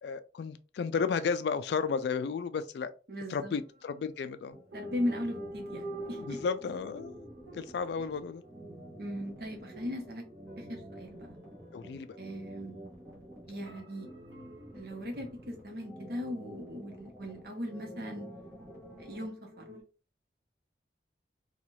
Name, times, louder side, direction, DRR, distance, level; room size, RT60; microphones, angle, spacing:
voice 1, 0.0-2.9 3.3-4.6 6.2-7.3 7.5-8.4 11.7-12.2, left 5 dB, 70° left, 0.3 m, -33 dB
voice 2, 3.1-3.6 4.7-6.4 9.0-10.3 10.6-11.4 12.2-12.8 13.5-14.1 14.7-18.3 19.0-19.6, left 1 dB, 55° right, 0.8 m, -38 dB
sound 1, 3.4-4.1 4.7-9.2 9.7-13.1 13.7-16.2 17.6-19.8, right 1 dB, 85° right, 0.9 m, -48 dB
sound 2, 4.5-19.3, right 1 dB, 15° right, 0.9 m, -49 dB
3.0 x 2.3 x 2.7 m
head